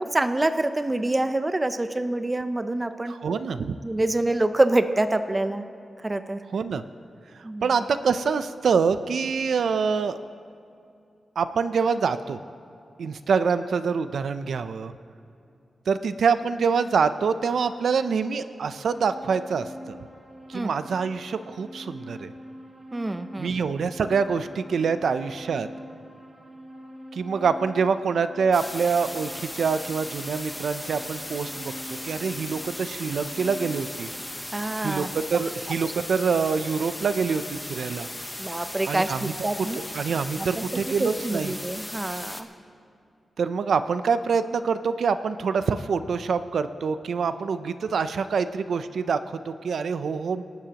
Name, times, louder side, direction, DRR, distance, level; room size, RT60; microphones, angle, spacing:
voice 1, 0.1-3.1 3.8-5.7 6.0-6.4 7.4-7.7 20.5-20.7 22.9-23.5 34.5-35.1 38.4-39.8 40.4-40.6 41.0-42.5, right 2 dB, 20° right, 9 dB, 0.5 m, -26 dB
voice 2, 3.1-3.8 6.5-6.8 7.6-10.2 11.4-12.4 13.0-14.9 15.9-20.0 20.5-22.3 23.4-25.7 27.1-34.1 34.8-38.1 38.9-39.3 39.9-41.5 43.4-50.4, right 5 dB, 75° right, 11 dB, 0.5 m, -25 dB
sound 1, 18.0-34.3, equal, 35° right, 2.7 m, -45 dB
sound 2, 28.5-42.4, left 1 dB, 10° left, 0.8 m, -37 dB
26.5 x 12.0 x 2.9 m, 2.6 s
wide cardioid pair, 150°, 0 cm